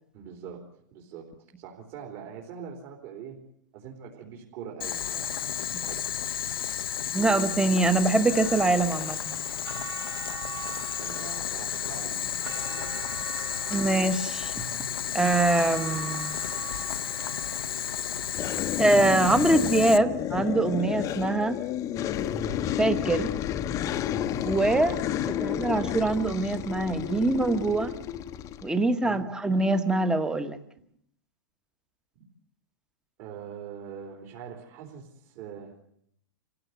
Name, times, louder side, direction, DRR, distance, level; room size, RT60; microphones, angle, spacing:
voice 1, 0.1-0.6 0.9-1.3 1.6-3.4 3.7-5.5 5.8-6.0 11.0-12.9 29.0-29.2 33.2-35.7, right 7 dB, 45° right, 0 dB, 3.9 m, -43 dB
Boiling, 4.8-20.0, left 9 dB, 85° left, 1.0 m, -32 dB
voice 2, 7.1-9.4 13.7-14.5 15.1-16.3 18.8-21.6 22.8-23.3 24.4-25.0 25.4-27.9 28.6-30.6, right 2 dB, 5° right, 10 dB, 1.3 m, -24 dB
sound 1, 8.3-17.8, right 6 dB, 85° right, 4.2 m, -42 dB
sound 2, 18.3-28.7, left 10 dB, 30° left, 1.0 m, -31 dB
26.0 x 16.0 x 8.2 m, 0.70 s
hypercardioid pair, 140°, 12 cm